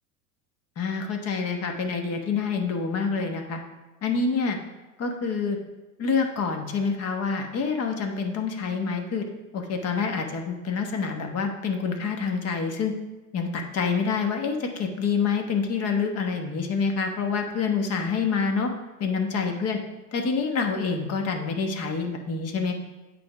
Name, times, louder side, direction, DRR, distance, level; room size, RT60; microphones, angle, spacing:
voice 1, 0.8-3.6 4.0-4.6 5.0-5.6 6.0-9.2 9.5-12.9 13.3-18.7 19.0-19.8 20.1-22.7, left 5 dB, 35° left, 4 dB, 1.2 m, -27 dB
8.3 x 3.5 x 5.8 m, 1.1 s
hypercardioid pair, 95°, 43 cm